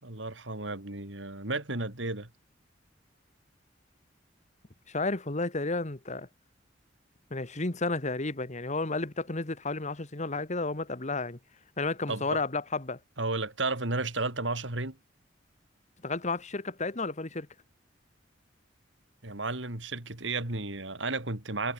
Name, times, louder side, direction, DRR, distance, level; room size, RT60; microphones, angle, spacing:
voice 1, 0.0-2.3 12.1-12.4 13.2-15.0 19.2-21.7, right 3 dB, 75° right, 3.9 m, -33 dB
voice 2, 4.9-6.3 7.3-11.4 11.8-13.0 16.0-17.5, left 3 dB, 40° left, 1.7 m, -32 dB
head